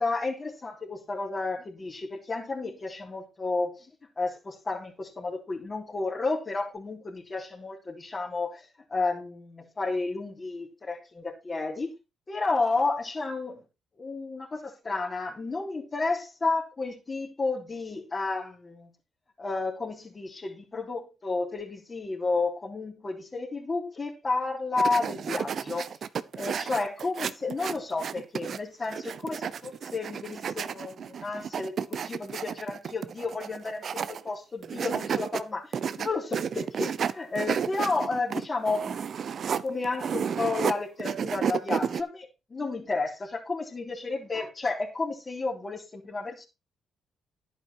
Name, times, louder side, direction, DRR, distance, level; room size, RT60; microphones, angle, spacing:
voice 1, 0.0-3.9 4.2-11.9 12.3-13.6 14.0-18.9 19.4-25.9 26.4-39.0 39.6-46.4, left 3 dB, 30° left, 3.7 m, -32 dB
sound 1, 24.8-28.6 28.9-34.3 34.6-35.4 35.7-40.7 41.0-42.0, right 7 dB, 55° right, 0.8 m, -32 dB
11.5 x 9.1 x 4.5 m
cardioid pair, 90°, 0 cm